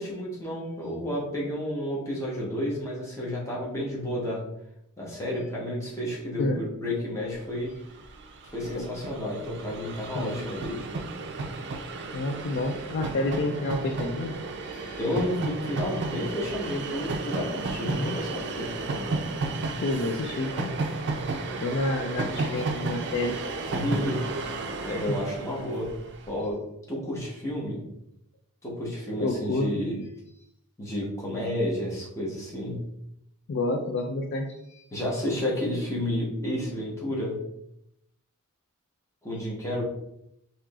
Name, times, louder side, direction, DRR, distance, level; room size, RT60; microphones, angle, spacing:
voice 1, 0.0-4.4 5.0-7.7 8.4-10.8 15.0-18.8 23.7-25.9 26.3-26.6 26.9-27.8 28.6-30.0 30.8-32.8 34.9-37.4 39.2-39.8, left 1 dB, 15° left, -5 dB, 1.0 m, -31 dB
Train, 7.6-7.7 7.9-26.3, right 3 dB, 50° right, 0.4 m, -33 dB
voice 2, 10.1-10.5 12.1-14.4 14.6-15.0 17.9-18.2 19.8-20.7 21.6-23.6 29.2-29.7 33.5-34.8, left 2 dB, 55° left, 4 dB, 0.4 m, -29 dB
4.6 x 2.8 x 2.4 m, 0.79 s
head